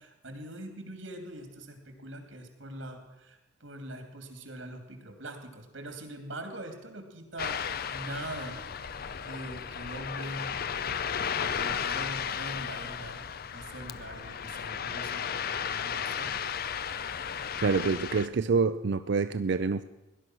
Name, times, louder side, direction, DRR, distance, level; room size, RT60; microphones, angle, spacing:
voice 1, 0.0-8.6 9.2-10.5 11.4-13.2 13.5-16.5, right 1 dB, 80° right, 5 dB, 2.8 m, -42 dB
Ocean, 7.4-18.3, left 7 dB, 50° left, 0.6 m, -34 dB
voice 2, 17.6-19.8, right 4 dB, 65° right, 11 dB, 0.5 m, -26 dB
17.5 x 11.0 x 6.2 m, 0.99 s
head